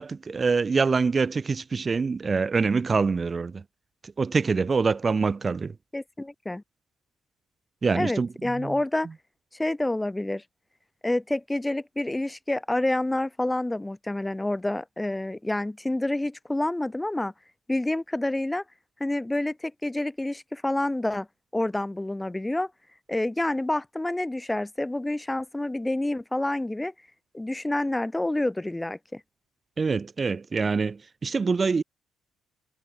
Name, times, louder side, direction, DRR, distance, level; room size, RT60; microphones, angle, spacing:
voice 1, 0.0-3.6 4.2-5.7 7.8-8.3 8.6-8.7 29.8-31.8, right 4 dB, 35° right, 1.8 m, -25 dB
voice 2, 5.9-6.6 7.9-9.1 9.5-10.4 11.0-17.3 17.7-18.6 19.0-21.3 21.5-22.7 23.1-26.9 27.3-29.2, left 1 dB, 10° left, 2.9 m, -28 dB
supercardioid pair, 75°, 0 cm